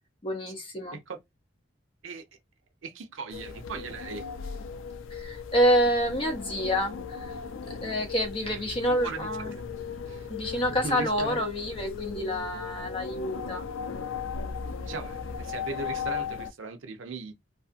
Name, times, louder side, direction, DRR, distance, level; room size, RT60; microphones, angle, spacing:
voice 1, 0.2-1.0 5.1-7.3 7.7-9.6 10.3-13.6, equal, 30° left, 0.7 m, -28 dB
voice 2, 2.8-4.3 8.5-9.5 10.1-11.4 14.8-17.3, right 3 dB, 85° right, 0.6 m, -38 dB
sound 1, 3.3-16.5, left 6 dB, 85° left, 0.4 m, -37 dB
2.5 x 2.4 x 2.4 m
head